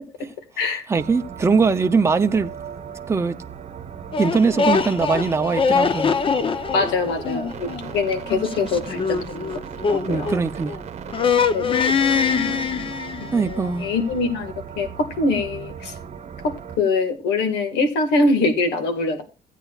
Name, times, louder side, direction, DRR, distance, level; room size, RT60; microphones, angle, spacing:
voice 1, 0.7-2.5 3.1-3.4 4.2-6.1 10.0-10.8 13.3-13.9, right 4 dB, 15° right, 0.6 m, -21 dB
sound 1, 0.9-16.8, right 7 dB, 40° right, 1.0 m, -37 dB
sound 2, 4.1-10.8 11.1-13.5, left 5 dB, 30° left, 0.8 m, -23 dB
voice 2, 6.7-9.5 9.9-10.3 11.5-11.9 12.3-12.6 13.2-15.9 16.4-19.2, left 3 dB, 85° left, 2.0 m, -23 dB
15.5 x 9.0 x 2.4 m
cardioid pair, 110°, 17 cm